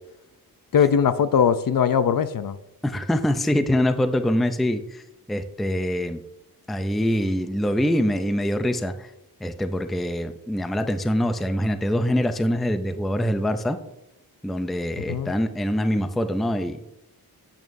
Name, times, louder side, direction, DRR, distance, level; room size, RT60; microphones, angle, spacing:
voice 1, 0.7-2.6 15.1-15.3, left 7 dB, 60° left, 12 dB, 0.5 m, -20 dB
voice 2, 2.8-5.0 5.3-6.2 6.7-9.1 9.4-13.8 14.4-16.8, equal, ahead, 9 dB, 0.4 m, -24 dB
9.2 x 8.7 x 2.6 m, 0.84 s
wide cardioid pair, 180°, 39 cm